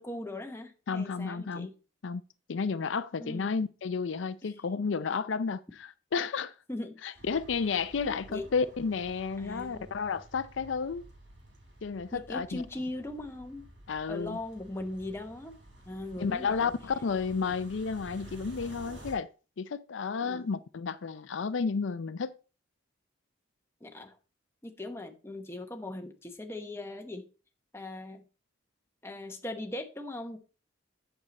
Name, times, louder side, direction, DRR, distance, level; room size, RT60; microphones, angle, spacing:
voice 1, 0.0-1.7 3.2-3.5 4.4-4.6 6.7-7.2 8.0-8.5 9.4-9.9 12.1-13.7 14.1-15.6 15.8-16.7 20.2-20.5 23.8-24.2 24.6-27.3 27.7-28.2 29.0-30.4, left 1 dB, 15° left, 1.0 m, -39 dB
voice 2, 0.9-1.7 2.0-2.2 2.5-6.5 7.0-11.1 11.8-12.6 13.9-14.4 16.2-19.3 19.6-22.4, left 5 dB, 80° left, 0.5 m, -32 dB
sound 1, 7.1-19.1, right 1 dB, 70° right, 5.0 m, -51 dB
8.7 x 6.6 x 4.1 m
head